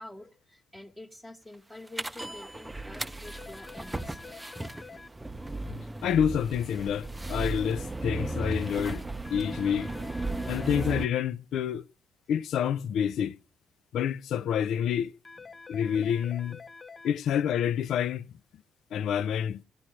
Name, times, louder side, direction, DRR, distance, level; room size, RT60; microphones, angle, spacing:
voice 1, 0.0-4.5, left 1 dB, 10° left, 1.0 m, -48 dB
sound 1, 2.0-11.1, right 2 dB, 10° right, 0.6 m, -35 dB
sound 2, 3.2-5.1 9.2-11.1 15.2-17.1, left 4 dB, 30° left, 0.6 m, -47 dB
voice 2, 5.7-9.0 9.3-9.9 10.5-11.9 12.3-13.3 13.9-15.1 15.7-16.6 17.0-18.3 18.9-19.6, left 9 dB, 75° left, 0.5 m, -28 dB
16.5 x 11.5 x 3.1 m
cardioid pair, 90°, 0 cm